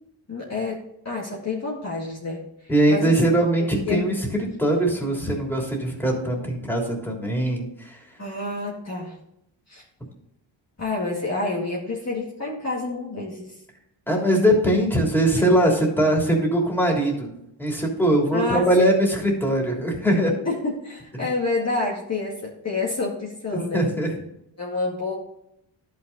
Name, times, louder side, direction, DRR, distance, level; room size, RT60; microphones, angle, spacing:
voice 1, 0.3-3.2 3.6-4.1 8.2-9.1 9.7-9.8 10.8-13.6 18.3-18.7 20.5-23.9 24.6-25.2, left 3 dB, 35° left, -4 dB, 2.1 m, -28 dB
voice 2, 2.7-4.1 4.6-8.0 14.1-17.3 17.6-20.4 23.7-24.2, right 1 dB, 5° left, -1 dB, 3.2 m, -21 dB
11.0 x 5.9 x 4.0 m, 0.80 s
cardioid pair, 70°, 47 cm